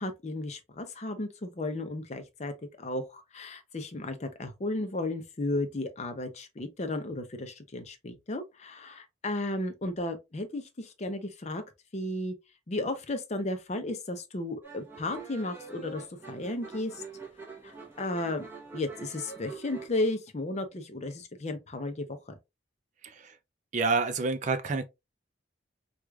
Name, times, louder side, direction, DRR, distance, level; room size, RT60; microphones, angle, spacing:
voice 1, 0.0-11.6 11.9-12.3 12.7-17.0 17.6-18.5 18.7-22.4, left 2 dB, 35° left, 0.5 m, -34 dB
sound 1, 14.6-19.9, right 4 dB, 10° right, 0.9 m, -45 dB
voice 2, 23.0-23.4 23.7-24.9, right 4 dB, 40° right, 0.3 m, -28 dB
4.6 x 2.3 x 2.3 m
head